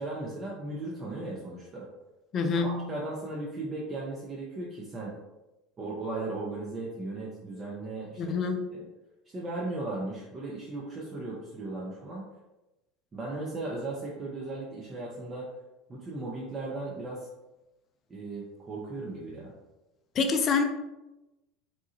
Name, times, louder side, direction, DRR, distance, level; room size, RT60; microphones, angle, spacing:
voice 1, 0.0-1.9 2.6-5.1 5.8-8.4 8.7-8.8 9.3-12.3 13.1-15.5 15.9-17.3 18.1-19.5, right 2 dB, 30° right, -4 dB, 0.6 m, -36 dB
voice 2, 2.3-2.8 8.2-8.6 20.1-20.6, left 4 dB, 40° left, 6 dB, 0.4 m, -26 dB
2.8 x 2.3 x 2.8 m, 1.0 s
figure-of-eight pair, 70°, 0 cm